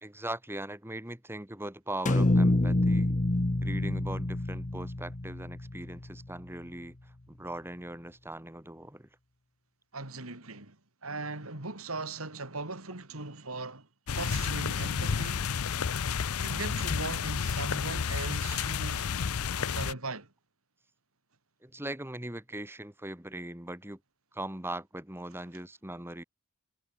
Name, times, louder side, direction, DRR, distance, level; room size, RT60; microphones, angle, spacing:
voice 1, 0.0-3.1 3.6-9.1 21.6-24.0 24.3-26.2, right 1 dB, 10° right, 2.6 m, -40 dB
sound 1, 2.1-6.3, left 1 dB, 35° left, 1.0 m, -27 dB
voice 2, 9.9-15.5 16.4-19.1 19.6-20.3, right 3 dB, 75° right, 3.6 m, -39 dB
sound 2, 14.1-19.9, left 6 dB, 85° left, 0.6 m, -31 dB
head